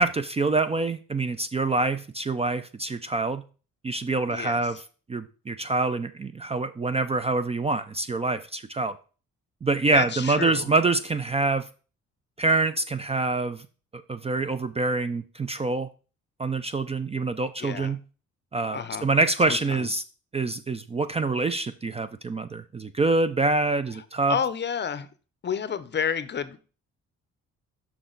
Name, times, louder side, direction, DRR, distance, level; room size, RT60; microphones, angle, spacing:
voice 1, 0.0-3.4 3.8-4.8 5.1-9.0 9.6-11.7 12.4-13.6 14.1-15.9 16.4-18.0 18.5-20.0 20.3-24.4, right 3 dB, 20° right, 0.4 m, -25 dB
voice 2, 4.3-4.6 9.9-10.7 17.6-17.9 18.7-19.1 19.5-19.9 24.3-25.1 25.4-26.6, left 7 dB, 35° left, 0.6 m, -30 dB
6.2 x 5.7 x 3.9 m
cardioid pair, 90°, 30 cm